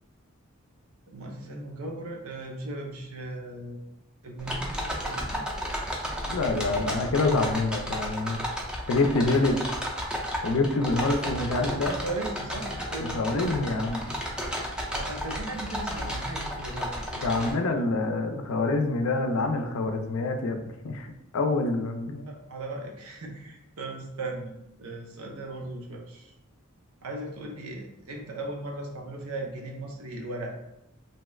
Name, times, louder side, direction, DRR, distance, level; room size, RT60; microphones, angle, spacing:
voice 1, 1.1-3.8 4.2-5.5 11.9-13.2 14.9-17.8 22.2-26.3 27.0-30.5, right 2 dB, 80° right, 1 dB, 0.6 m, -37 dB
sound 1, 4.4-17.5, equal, 5° right, 0.4 m, -33 dB
voice 2, 6.3-8.4 8.9-9.6 10.4-12.0 13.0-14.2 17.2-20.6 20.8-21.1 21.3-22.3, left 3 dB, 70° left, 5 dB, 0.4 m, -26 dB
2.8 x 2.3 x 3.1 m, 0.85 s
head